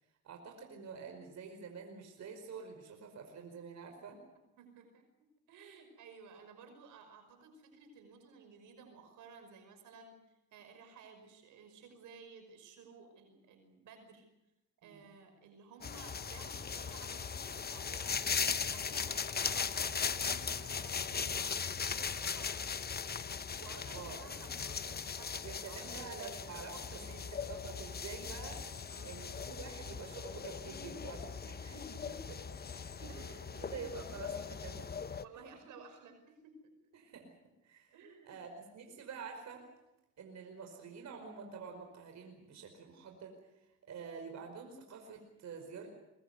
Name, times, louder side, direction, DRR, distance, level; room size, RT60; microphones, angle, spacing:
voice 1, 0.2-4.2 14.8-15.1 23.9-24.4 25.4-27.0 27.3-31.8 33.0-33.1 33.5-35.4 36.9-37.3 37.6-37.9 38.2-39.7 40.2-45.9, right 5 dB, 65° right, 3 dB, 5.0 m, -48 dB
voice 2, 4.6-14.3 14.8-18.2 18.7-23.0 23.6-26.4 26.7-27.3 28.9-29.2 31.5-32.4 33.1-33.8 35.2-36.7 37.9-38.4, right 5 dB, 80° right, 6 dB, 5.6 m, -55 dB
sound 1, 15.8-35.2, left 6 dB, 30° left, 1.0 m, -39 dB
23.5 x 21.5 x 8.1 m, 0.93 s
cardioid pair, 90°, 30 cm